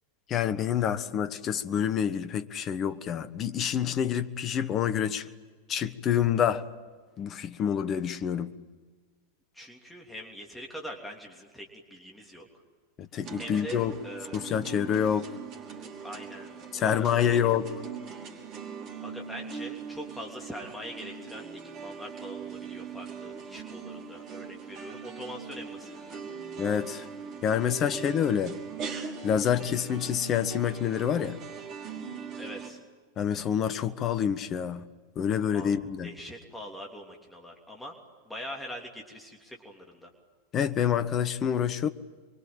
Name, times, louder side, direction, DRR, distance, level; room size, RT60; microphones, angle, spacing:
voice 1, 0.3-5.3 5.7-6.6 7.2-8.5 13.0-14.0 14.3-15.3 16.7-17.7 26.6-27.0 27.4-28.6 29.2-31.4 33.2-34.9 35.1-36.1 40.5-41.9, left 9 dB, 30° left, 1.3 m, -27 dB
voice 2, 9.5-12.5 13.4-14.6 16.0-17.5 19.0-26.2 32.3-32.8 35.5-35.8 36.0-37.9 38.3-40.1, equal, 5° left, 3.2 m, -43 dB
sound 1, 13.2-32.7, right 6 dB, 35° right, 4.9 m, -41 dB
26.5 x 23.5 x 8.9 m
figure-of-eight pair, 90°, 0 cm